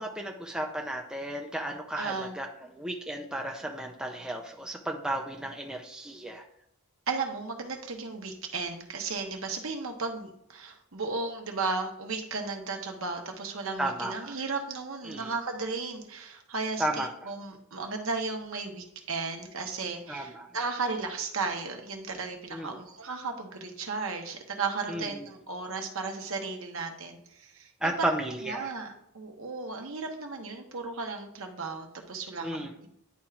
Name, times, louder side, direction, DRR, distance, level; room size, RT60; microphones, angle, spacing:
voice 1, 0.0-6.4 13.8-14.3 15.1-15.3 16.8-17.3 20.1-20.5 22.5-22.8 24.9-25.3 27.8-28.7 32.4-32.8, right 1 dB, 5° right, 2 dB, 0.5 m, -34 dB
voice 2, 2.0-2.4 7.1-28.1 28.5-32.9, right 4 dB, 70° right, 3 dB, 1.0 m, -35 dB
10.5 x 4.4 x 2.5 m, 0.76 s
head